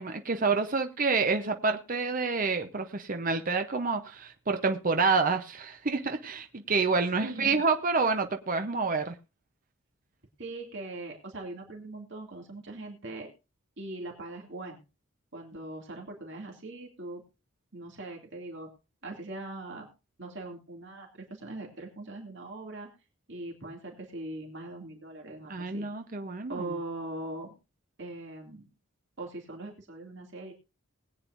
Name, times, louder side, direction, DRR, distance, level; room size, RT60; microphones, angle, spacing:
voice 1, 0.0-9.2 25.5-26.6, right 4 dB, 40° right, 0.8 m, -28 dB
voice 2, 7.2-7.6 10.4-13.3 13.8-14.8 15.3-17.2 17.7-18.7 19.0-19.9 20.2-22.9 23.3-25.9 26.5-27.5 28.0-28.7 29.2-30.5, right 2 dB, 60° right, 2.5 m, -41 dB
20.5 x 8.8 x 2.6 m
head